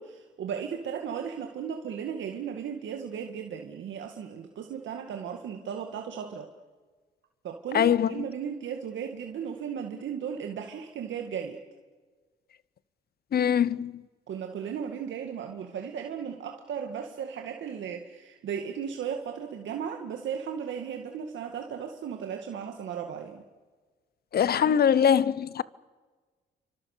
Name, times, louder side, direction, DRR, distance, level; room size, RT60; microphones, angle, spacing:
voice 1, 0.0-6.5 7.4-11.6 14.3-23.4, right 7 dB, 70° right, 2.1 m, -36 dB
voice 2, 7.7-8.2 13.3-14.0 24.3-25.6, left 8 dB, 50° left, 0.9 m, -23 dB
29.0 x 25.0 x 6.7 m
cardioid pair, 90°, 20 cm